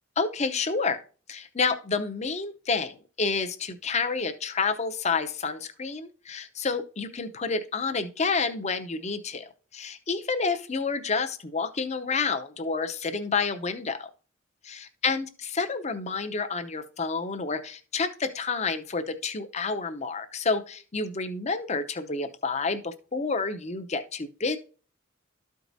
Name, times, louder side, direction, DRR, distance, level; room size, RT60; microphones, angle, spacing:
voice 1, 0.2-1.0 1.3-14.1 14.6-24.6, left 4 dB, 35° left, 9 dB, 0.6 m, -29 dB
13.0 x 4.7 x 2.6 m, 0.38 s
head